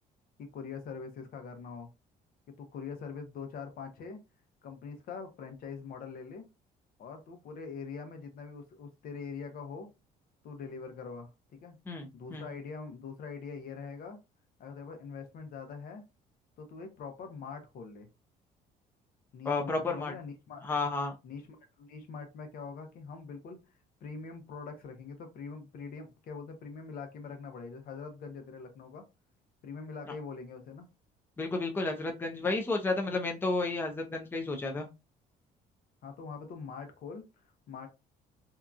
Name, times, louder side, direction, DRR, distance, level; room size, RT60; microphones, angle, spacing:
voice 1, 0.4-1.9 2.5-4.2 4.6-6.4 7.0-9.9 10.4-11.8 12.1-14.2 14.6-16.0 16.6-18.1 19.3-20.7 21.2-23.6 24.0-29.1 29.6-30.9 36.0-37.9, left 5 dB, 60° left, 6 dB, 0.8 m, -43 dB
voice 2, 11.9-12.5 19.5-20.1 20.6-21.1 31.4-34.9, left 3 dB, 10° left, 3 dB, 0.5 m, -32 dB
2.8 x 2.3 x 2.4 m, 0.26 s
cardioid pair, 110°, 17 cm